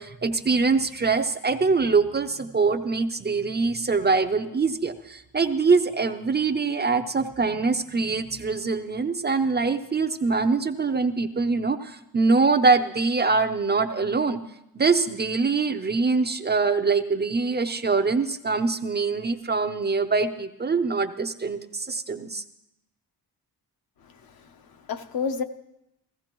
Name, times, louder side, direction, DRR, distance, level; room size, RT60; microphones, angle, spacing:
voice 1, 0.0-14.4 14.7-22.4, right 4 dB, 25° right, 8 dB, 0.5 m, -24 dB
voice 2, 24.0-25.4, left 5 dB, 65° left, 7 dB, 0.8 m, -32 dB
16.0 x 15.5 x 3.0 m, 0.83 s
wide cardioid pair, 140°, 39 cm